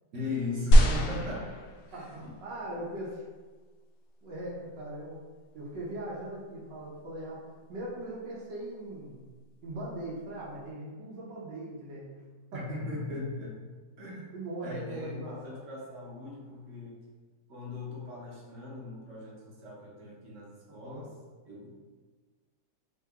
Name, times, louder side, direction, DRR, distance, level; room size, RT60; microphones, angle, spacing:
voice 1, 0.1-1.5 1.9-2.1 12.5-13.6 14.0-14.3 14.6-17.0 17.5-21.1 21.4-21.7, left 3 dB, 55° right, -4 dB, 1.1 m, -38 dB
sound 1, 0.7-2.2 3.0-3.1, right 1 dB, 70° left, 1.0 m, -22 dB
voice 2, 1.9-3.2 4.2-5.2 5.5-9.2 9.6-12.1 12.5-12.9 14.3-15.6 20.7-21.0, right 1 dB, 85° right, -5 dB, 1.5 m, -40 dB
3.8 x 2.8 x 3.5 m, 1.4 s
omnidirectional pair, 1.8 m